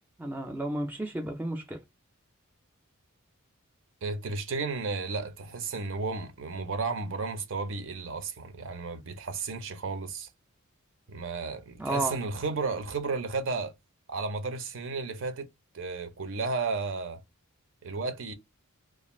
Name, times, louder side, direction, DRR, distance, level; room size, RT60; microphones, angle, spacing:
voice 1, 0.0-1.8 11.8-12.2, right 1 dB, 10° right, 0.3 m, -32 dB
voice 2, 4.0-10.3 11.1-13.7 14.1-15.5 15.7-17.2 17.8-18.3, right 4 dB, 55° right, 0.6 m, -33 dB
2.4 x 2.3 x 3.0 m
head